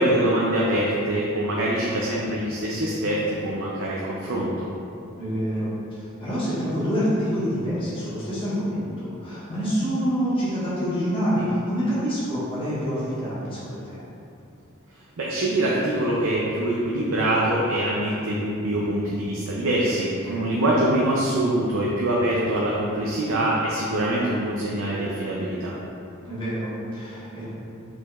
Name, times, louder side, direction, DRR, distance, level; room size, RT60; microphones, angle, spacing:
voice 1, 0.0-4.7 15.2-20.1 20.4-25.7, right 1 dB, 70° right, -5 dB, 0.5 m, -24 dB
voice 2, 5.2-14.0 20.2-20.5 26.2-27.5, equal, 25° left, -11 dB, 1.5 m, -27 dB
4.9 x 4.2 x 2.4 m, 2.6 s
head